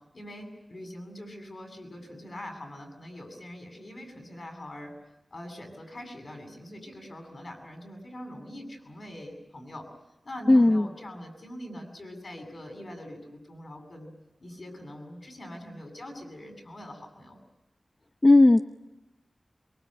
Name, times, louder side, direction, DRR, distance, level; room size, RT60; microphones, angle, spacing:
voice 1, 0.1-4.9 5.3-9.9 10.2-14.1 14.4-17.4, left 1 dB, 60° left, 3 dB, 7.7 m, -43 dB
voice 2, 10.5-10.8 18.2-18.6, left 2 dB, 35° left, 7 dB, 0.9 m, -16 dB
24.5 x 23.5 x 9.1 m, 0.96 s
wide cardioid pair, 85°, 0 cm